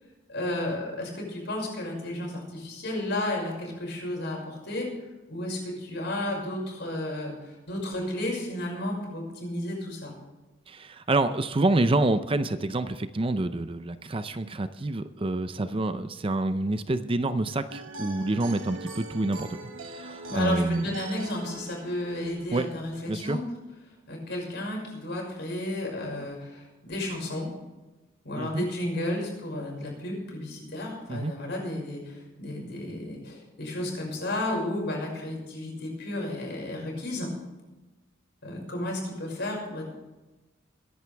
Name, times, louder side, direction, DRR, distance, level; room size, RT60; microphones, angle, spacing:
voice 1, 0.3-4.9 5.3-10.1 20.3-23.4 24.1-27.5 28.2-37.3 38.4-39.9, left 1 dB, 60° left, 0 dB, 5.9 m, -33 dB
voice 2, 10.7-20.9 22.5-22.7 23.1-23.4 28.4-28.7 31.1-31.3, right 2 dB, 25° right, 11 dB, 0.6 m, -27 dB
sound 1, 17.7-22.7, right 3 dB, 70° right, 1.4 m, -42 dB
22.0 x 11.0 x 3.5 m, 1.1 s
head